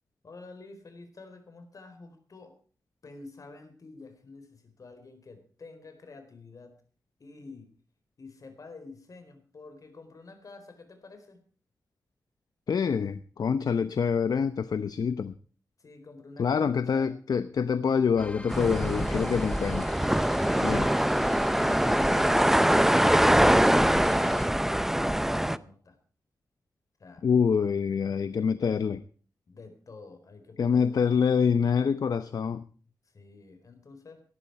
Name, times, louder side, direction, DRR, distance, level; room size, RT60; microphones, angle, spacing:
voice 1, 0.2-2.6 3.0-6.8 7.2-7.7 8.2-11.4 15.8-17.1 20.2-26.0 27.0-27.2 29.5-31.1 33.0-34.2, left 3 dB, 55° left, 8 dB, 4.3 m, -49 dB
voice 2, 12.7-15.3 16.4-19.9 20.6-20.9 27.2-29.0 30.6-32.6, left 6 dB, 70° left, 13 dB, 0.8 m, -26 dB
sound 1, 18.2-24.5, left 2 dB, 20° left, 1.2 m, -42 dB
sound 2, 18.5-25.6, right 1 dB, 5° right, 0.6 m, -23 dB
19.0 x 13.0 x 4.7 m, 0.42 s
wide cardioid pair, 95°, 7 cm